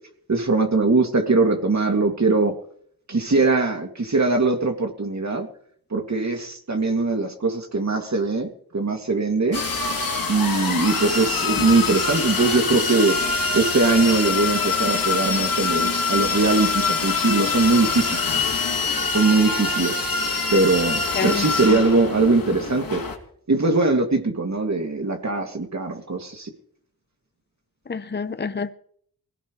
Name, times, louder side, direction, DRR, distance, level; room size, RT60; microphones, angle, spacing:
voice 1, 0.3-2.6 3.1-5.5 5.9-9.6 10.3-13.2 13.5-18.3 19.1-20.0 20.5-23.0 23.5-26.5, right 3 dB, 50° right, 2.6 m, -21 dB
sound 1, 9.5-23.2, left 4 dB, 70° left, 3.1 m, -24 dB
voice 2, 21.1-21.8 27.9-28.7, left 5 dB, 30° left, 0.9 m, -28 dB
20.5 x 17.5 x 3.3 m
cardioid pair, 50°, 36 cm